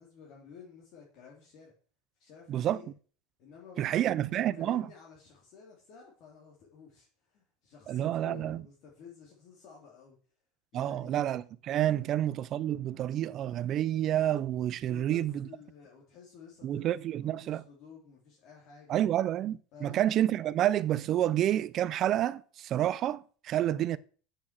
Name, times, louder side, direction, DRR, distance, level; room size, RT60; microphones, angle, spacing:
voice 1, 0.0-1.7 2.2-2.9 3.4-10.2 10.7-11.2 12.0-12.1 14.9-19.0 19.7-20.0, left 6 dB, 40° left, 3.1 m, -52 dB
voice 2, 2.5-2.8 3.8-4.9 7.9-8.6 10.7-15.4 16.6-17.6 18.9-24.0, right 12 dB, 30° right, 0.5 m, -29 dB
8.8 x 7.2 x 7.4 m
supercardioid pair, 175°, 0 cm